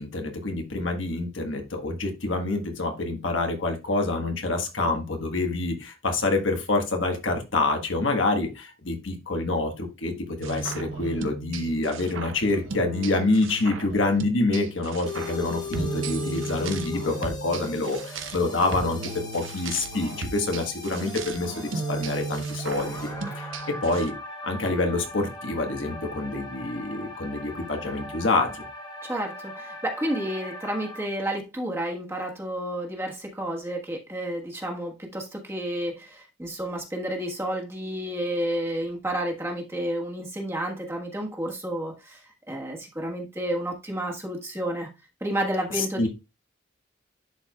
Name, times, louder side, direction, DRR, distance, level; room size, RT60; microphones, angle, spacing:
voice 1, 0.0-23.1 23.4-24.1 24.4-28.6 45.8-46.1, left 2 dB, 75° left, 4 dB, 1.4 m, -27 dB
sound 1, 10.4-24.1, right 4 dB, 90° right, 0.9 m, -35 dB
sound 2, 15.1-31.1, left 3 dB, 20° left, 1.2 m, -39 dB
voice 2, 29.0-42.2 42.5-44.9 45.2-46.1, right 1 dB, 15° right, 0 dB, 1.4 m, -31 dB
11.0 x 4.5 x 2.3 m, 0.26 s
head